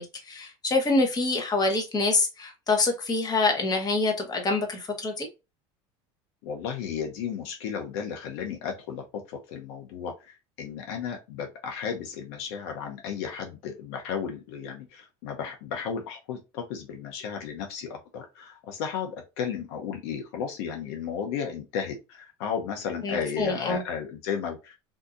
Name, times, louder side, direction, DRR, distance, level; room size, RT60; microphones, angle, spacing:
voice 1, 0.0-5.3 23.0-23.8, left 3 dB, 30° left, 1.2 m, -26 dB
voice 2, 6.4-24.7, left 7 dB, 75° left, 0.8 m, -34 dB
3.7 x 2.8 x 2.5 m
supercardioid pair, 100°, 13 cm